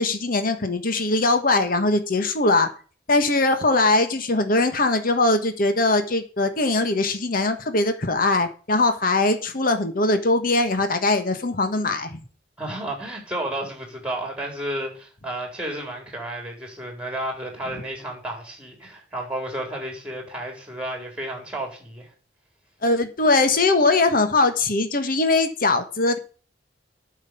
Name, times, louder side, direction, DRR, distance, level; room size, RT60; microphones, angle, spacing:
voice 1, 0.0-2.7 3.1-12.2 22.8-26.2, left 2 dB, 50° left, 1.4 m, -21 dB
voice 2, 12.6-22.1, right 1 dB, 5° right, 4.2 m, -32 dB
9.1 x 6.5 x 8.5 m
head